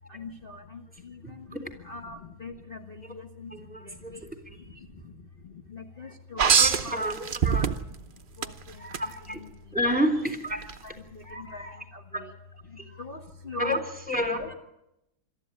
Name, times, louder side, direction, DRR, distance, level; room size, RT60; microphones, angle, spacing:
voice 1, 0.1-7.3 7.6-10.0 10.8-12.3 12.6-13.8 14.3-14.5, left 3 dB, 30° left, 1 dB, 1.3 m, -43 dB
voice 2, 3.5-4.1 4.5-4.6 6.6-7.7 9.0-9.4 9.7-10.6 12.1-12.2 12.8-12.9 13.6-14.5, equal, 5° right, 4 dB, 3.3 m, -29 dB
sound 1, 6.4-8.0 8.4-9.0 10.6-10.7, right 7 dB, 70° right, 0.4 m, -23 dB
22.5 x 13.5 x 9.9 m, 0.87 s
omnidirectional pair, 2.2 m